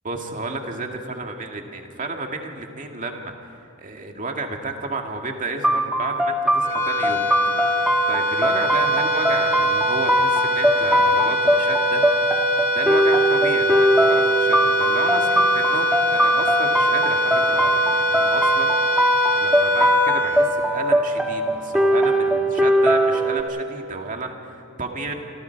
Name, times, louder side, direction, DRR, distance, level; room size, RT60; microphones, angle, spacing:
voice 1, 0.0-7.2 7.6-12.0 12.7-25.1, right 3 dB, 40° right, 3 dB, 2.2 m, -31 dB
sound 1, 5.6-23.4, right 1 dB, 5° right, 1.4 m, -21 dB
sound 2, 6.6-21.2, left 1 dB, 40° left, 3.0 m, -23 dB
28.5 x 25.5 x 4.7 m, 2.6 s
head